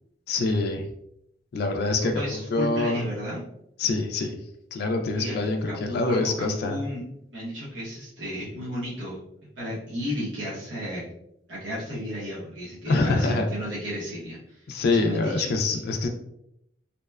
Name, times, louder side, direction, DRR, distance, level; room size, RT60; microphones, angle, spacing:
voice 1, 0.3-0.8 1.5-3.0 3.8-4.4 4.7-6.8 12.9-13.5 14.7-16.1, left 3 dB, 55° left, 5 dB, 0.3 m, -25 dB
voice 2, 2.0-3.4 5.1-5.4 5.7-7.0 7.3-9.2 9.6-11.0 11.5-14.6 14.9-15.8, equal, 80° right, -8 dB, 0.8 m, -33 dB
2.7 x 2.1 x 2.2 m, 0.76 s
head